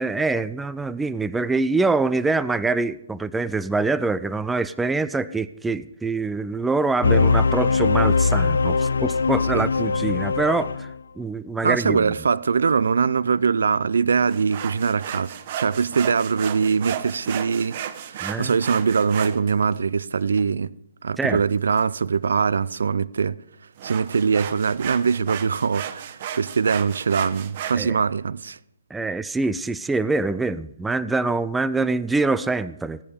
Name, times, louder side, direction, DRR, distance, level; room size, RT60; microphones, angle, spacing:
voice 1, 0.0-10.9 11.2-12.1 18.2-18.5 21.2-21.4 27.7-28.0 28.9-33.0, right 3 dB, 5° right, 0.4 m, -24 dB
sound 1, 7.0-11.0, left 4 dB, 85° left, 0.6 m, -21 dB
voice 2, 9.5-10.0 11.6-20.7 21.0-23.4 23.8-28.6, right 5 dB, 80° right, 0.5 m, -22 dB
sound 2, 14.2-19.8 20.4-20.5 21.5-21.8 23.8-27.8, right 10 dB, 45° right, 1.0 m, -34 dB
16.5 x 10.0 x 5.1 m
hypercardioid pair, 145°, 0 cm